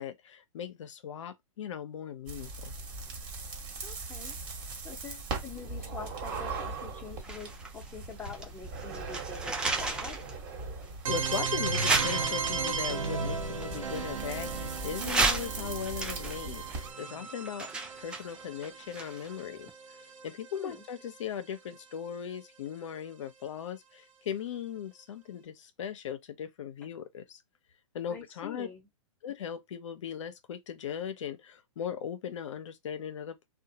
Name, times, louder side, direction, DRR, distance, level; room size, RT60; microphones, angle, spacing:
voice 1, 0.0-2.7 11.1-17.7 17.9-20.0 20.2-27.4 27.9-28.7 29.2-33.5, left 8 dB, 60° left, 0.7 m, -38 dB
sound 1, 2.3-16.9, right 3 dB, 35° right, 1.3 m, -40 dB
voice 2, 3.8-4.4 4.8-10.2 20.6-20.8 28.1-28.9, left 6 dB, 10° left, 0.8 m, -45 dB
sound 2, 7.2-8.5 8.8-10.3 10.8-10.9 11.7-12.7 13.6-14.6 15.0-19.4 19.7-19.8, right 3 dB, 5° right, 0.3 m, -32 dB
sound 3, 11.1-20.8, right 5 dB, 70° right, 0.9 m, -35 dB
2.8 x 2.2 x 2.8 m
hypercardioid pair, 135°, 17 cm